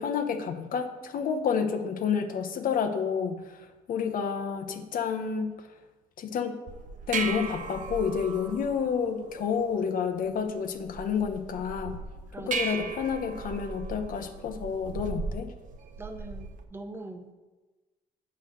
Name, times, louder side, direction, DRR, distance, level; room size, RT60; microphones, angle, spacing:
voice 1, 0.0-5.5 6.2-6.6 7.1-12.0 12.5-15.5, left 6 dB, 55° left, 6 dB, 0.9 m, -29 dB
sound 1, 6.7-16.6, right 4 dB, 50° right, 0.8 m, -38 dB
voice 2, 12.3-12.9 16.0-17.3, right 2 dB, 15° right, 7 dB, 0.8 m, -43 dB
8.5 x 4.0 x 6.7 m, 1.2 s
cardioid pair, 110°, 17 cm